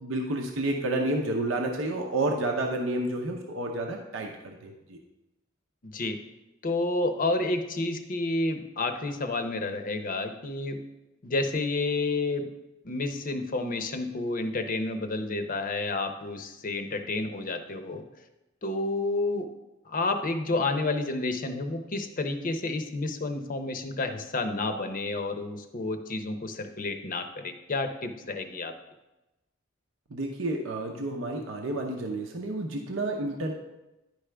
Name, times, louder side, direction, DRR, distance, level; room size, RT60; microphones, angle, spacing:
voice 1, 0.0-5.0 30.1-33.5, right 2 dB, 70° right, 1 dB, 0.8 m, -30 dB
voice 2, 5.8-6.2 6.6-10.8 11.2-12.5 12.8-18.1 18.6-19.5 19.9-28.7, left 2 dB, 40° left, 7 dB, 0.7 m, -30 dB
10.5 x 4.9 x 3.4 m, 0.99 s
head